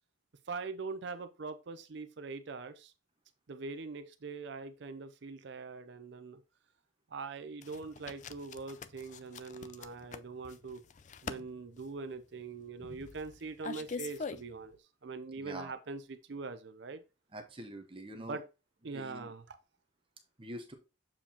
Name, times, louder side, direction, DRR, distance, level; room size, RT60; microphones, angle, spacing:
voice 1, 0.5-2.9 3.5-6.4 7.1-10.8 11.2-17.0 18.2-18.4 18.8-19.6, right 4 dB, 60° right, 0.5 m, -42 dB
sound 1, 7.6-14.7, left 5 dB, 35° left, 0.4 m, -44 dB
voice 2, 15.3-15.7 17.3-18.4 18.9-19.3 20.4-20.7, right 1 dB, 25° right, 0.8 m, -45 dB
7.3 x 4.5 x 2.9 m
head